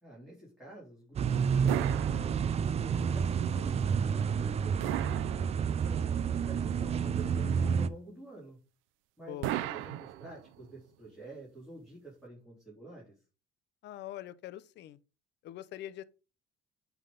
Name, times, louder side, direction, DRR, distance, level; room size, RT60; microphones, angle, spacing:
voice 1, 0.0-6.1 6.4-8.6 9.2-13.2, right 2 dB, ahead, 3.5 m, -49 dB
sound 1, 1.2-7.9, right 7 dB, 30° right, 0.4 m, -30 dB
sound 2, 1.7-2.9 4.8-6.0 9.4-10.7, right 14 dB, 80° right, 0.5 m, -37 dB
voice 2, 9.3-9.6 13.8-15.0 15.4-16.0, left 13 dB, 60° left, 0.6 m, -43 dB
8.7 x 3.6 x 3.8 m
cardioid pair, 105°, 20 cm